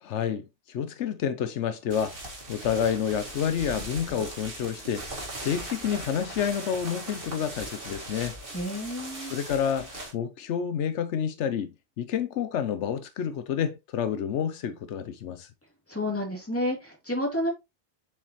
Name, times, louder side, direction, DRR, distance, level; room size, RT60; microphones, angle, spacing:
voice 1, 0.0-8.4 9.3-15.5, left 8 dB, 85° left, 1.0 m, -29 dB
sound 1, 1.9-10.1, right 1 dB, 55° right, 2.0 m, -39 dB
voice 2, 8.5-9.3 15.9-17.5, left 1 dB, 10° left, 2.6 m, -30 dB
7.2 x 4.8 x 3.0 m
omnidirectional pair, 1.2 m